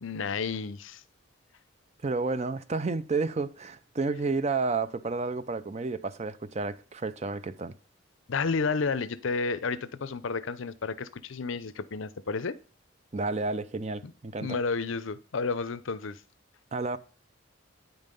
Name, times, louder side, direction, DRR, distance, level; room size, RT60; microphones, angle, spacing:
voice 1, 0.0-1.0 8.3-12.6 14.0-14.1 14.4-16.2, left 4 dB, 70° left, 0.6 m, -31 dB
voice 2, 2.0-7.7 13.1-14.6 16.7-17.0, right 3 dB, 35° right, 0.5 m, -31 dB
9.2 x 5.5 x 5.3 m
head